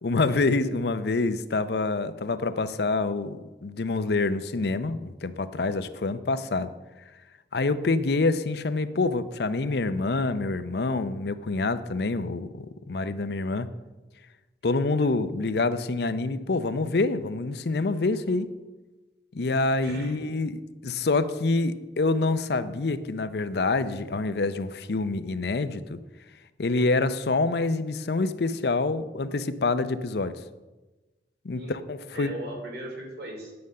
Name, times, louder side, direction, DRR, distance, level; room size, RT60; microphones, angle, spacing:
voice 1, 0.0-6.7 7.5-13.7 14.6-18.5 19.3-26.0 26.6-30.4 31.4-32.3, left 3 dB, 65° left, 12 dB, 0.6 m, -26 dB
voice 2, 19.8-20.3 31.5-31.7 32.1-33.5, right 1 dB, 70° right, 0 dB, 3.1 m, -38 dB
9.6 x 6.9 x 6.5 m, 1.1 s
head